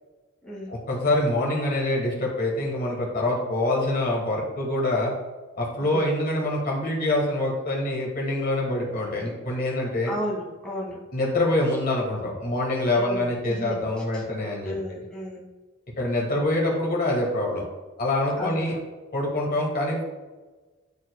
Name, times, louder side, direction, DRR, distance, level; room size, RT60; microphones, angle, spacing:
voice 1, 0.7-5.1 5.5-10.1 11.1-14.7 16.0-17.6 18.0-18.8 19.1-20.0, left 1 dB, 50° left, -2 dB, 1.5 m, -25 dB
voice 2, 10.0-11.0 12.9-13.8 14.1-14.2 14.6-15.4 18.4-18.8, left 1 dB, 5° left, -5 dB, 1.7 m, -33 dB
10.5 x 4.5 x 2.3 m, 1.3 s
head